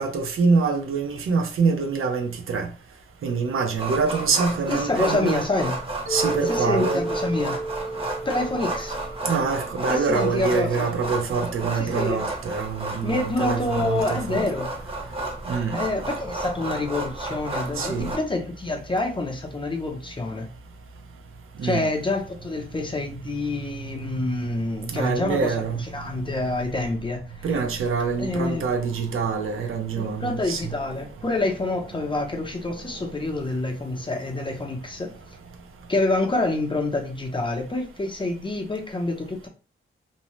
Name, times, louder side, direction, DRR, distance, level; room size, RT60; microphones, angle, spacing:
voice 1, 0.0-2.7 3.2-5.5 6.1-7.0 9.2-14.4 15.5-15.8 17.8-18.1 21.6-21.9 24.9-25.8 27.4-30.7, right 5 dB, 80° right, 0.5 m, -25 dB
sound 1, 3.8-18.2, right 2 dB, 25° right, 0.7 m, -32 dB
voice 2, 4.7-5.8 6.4-7.6 8.2-9.0 9.9-10.9 11.8-12.2 13.0-14.7 15.7-20.5 21.6-25.5 25.9-27.5 28.2-28.7 30.0-35.1 35.9-39.5, left 2 dB, 25° left, 0.6 m, -27 dB
Mallet percussion, 6.1-10.2, right 3 dB, 55° right, 1.0 m, -31 dB
2.6 x 2.0 x 3.0 m
wide cardioid pair, 90°, 21 cm